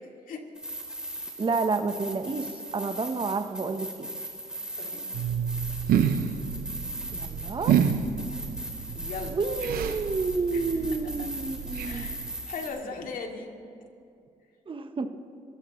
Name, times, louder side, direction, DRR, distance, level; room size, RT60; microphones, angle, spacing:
sound 1, 0.5-12.7, right 1 dB, 5° right, 3.8 m, -39 dB
voice 1, 1.4-4.1 7.1-7.7 9.3-12.1 14.7-15.1, right 4 dB, 35° right, 7 dB, 1.1 m, -30 dB
voice 2, 4.7-5.1 8.9-9.4 10.5-11.3 11.8-13.5, left 4 dB, 65° left, 2 dB, 2.5 m, -39 dB
sound 2, 5.1-12.4, right 8 dB, 75° right, 0.9 m, -29 dB
28.5 x 15.0 x 3.2 m, 2.4 s
supercardioid pair, 55°, 15 cm